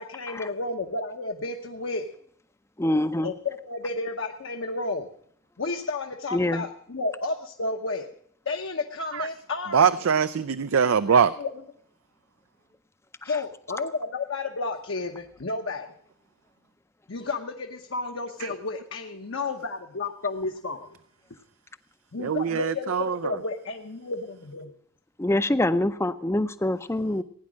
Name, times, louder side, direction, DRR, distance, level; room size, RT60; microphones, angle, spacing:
voice 1, 0.0-2.1 3.2-5.1 5.6-8.1 8.5-9.8 11.1-11.5 13.2-15.9 17.1-21.0 22.1-24.7, left 3 dB, 60° left, 0.9 m, -32 dB
voice 2, 2.8-3.3 6.3-6.6 13.2-13.3 25.2-27.2, left 1 dB, 10° left, 0.5 m, -25 dB
voice 3, 9.7-11.3 18.4-18.5 22.2-23.2, right 6 dB, 70° right, 0.4 m, -22 dB
16.5 x 9.6 x 6.2 m
head